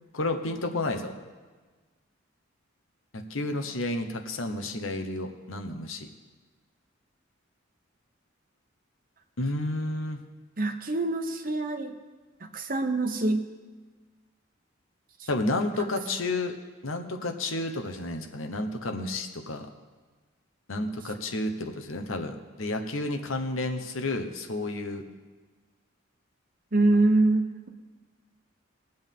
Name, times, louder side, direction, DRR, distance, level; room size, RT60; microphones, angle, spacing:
voice 1, 0.1-1.1 3.1-6.1 9.4-10.2 15.3-16.5 16.8-19.7 20.7-25.0, left 2 dB, 80° left, 5 dB, 1.1 m, -31 dB
voice 2, 10.6-11.9 12.5-13.5 26.7-27.7, right 2 dB, 45° right, 6 dB, 1.0 m, -24 dB
20.5 x 7.9 x 3.7 m, 1.4 s
head